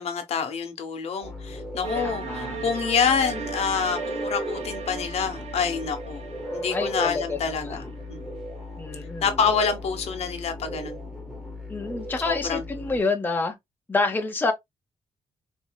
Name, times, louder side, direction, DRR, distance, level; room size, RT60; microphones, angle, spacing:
voice 1, 0.0-6.2 6.5-8.3 9.2-11.0 12.2-13.0, left 6 dB, 70° left, 1.0 m, -27 dB
sound 1, 1.2-13.0, left 1 dB, 5° right, 1.1 m, -36 dB
sound 2, 1.8-8.8, right 5 dB, 70° right, 0.8 m, -37 dB
voice 2, 1.9-2.6 6.7-7.8 8.8-9.3 11.7-13.5 13.9-14.5, left 3 dB, 15° left, 0.7 m, -28 dB
4.3 x 2.7 x 2.2 m
wide cardioid pair, 125°, 11 cm